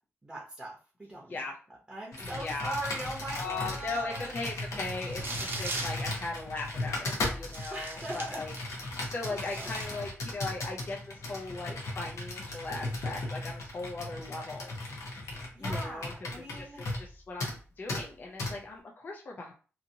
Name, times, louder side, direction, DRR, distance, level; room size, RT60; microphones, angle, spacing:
voice 1, 0.2-1.4 1.9-4.3 7.7-8.4 9.2-10.0 15.5-16.8, right 1 dB, 15° right, -4 dB, 0.7 m, -40 dB
Computer keyboard, 2.1-17.1 17.4-17.6 17.9-18.0 18.4-18.5, left 2 dB, 80° left, 0.9 m, -37 dB
voice 2, 2.2-2.8 3.3-8.5 8.8-14.7 15.6-19.5, left 3 dB, 40° left, 0 dB, 0.4 m, -38 dB
sound 1, 5.0-6.0 6.8-6.9 7.5-8.7 9.1-9.8, right 3 dB, 50° right, 0.7 m, -39 dB
2.8 x 2.6 x 2.6 m, 0.37 s
wide cardioid pair, 165°, 5 cm